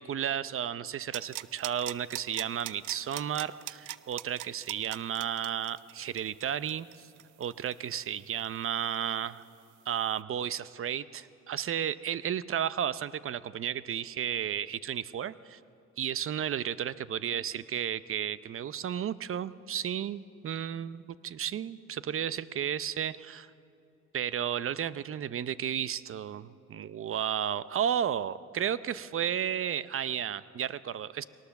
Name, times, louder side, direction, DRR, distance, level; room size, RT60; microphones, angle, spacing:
voice 1, 0.0-7.1 7.4-9.4 9.9-15.6 16.0-23.5 24.1-31.2, right 9 dB, 45° right, 17 dB, 0.7 m, -33 dB
sound 1, 1.1-8.6 8.9-9.0, right 16 dB, 85° right, 0.6 m, -41 dB
22.5 x 18.5 x 7.0 m, 2.8 s
cardioid pair, 90°, 30 cm